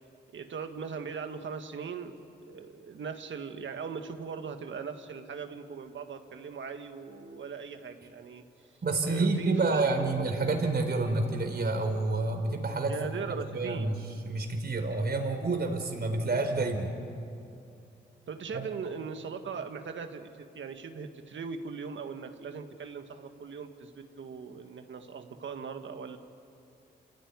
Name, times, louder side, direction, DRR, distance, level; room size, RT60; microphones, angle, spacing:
voice 1, 0.3-2.2 2.5-8.7 9.0-9.9 10.4-10.5 12.9-13.9 18.3-26.2, right 5 dB, 70° right, 6 dB, 1.8 m, -39 dB
voice 2, 8.8-13.0 13.5-16.9 18.5-18.6, right 3 dB, 55° right, 4 dB, 4.3 m, -29 dB
28.0 x 16.0 x 9.8 m, 2.6 s
supercardioid pair, 45°, 20 cm